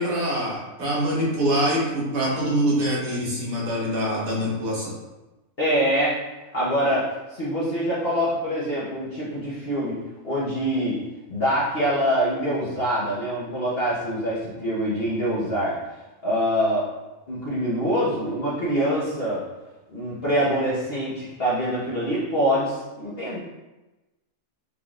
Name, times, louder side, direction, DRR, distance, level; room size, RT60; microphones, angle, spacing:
voice 1, 0.0-5.0, equal, 70° right, -4 dB, 1.6 m, -24 dB
voice 2, 5.6-6.2 6.5-7.0 7.3-10.0 10.2-11.0 11.3-15.8 16.2-16.9 17.3-19.4 19.9-23.4, equal, 45° left, -9 dB, 1.2 m, -24 dB
5.3 x 3.7 x 2.4 m, 1.1 s
omnidirectional pair, 1.5 m